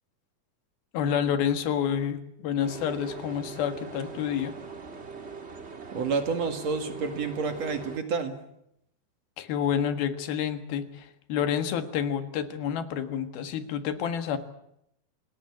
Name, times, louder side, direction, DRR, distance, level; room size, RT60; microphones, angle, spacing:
voice 1, 0.9-4.5 9.4-14.4, left 8 dB, 90° left, 8 dB, 3.5 m, -29 dB
sound 1, 2.6-8.0, right 5 dB, 25° right, 1.4 m, -41 dB
voice 2, 5.9-8.4, right 4 dB, 50° right, 6 dB, 3.0 m, -29 dB
27.5 x 19.5 x 8.6 m, 0.78 s
omnidirectional pair, 4.2 m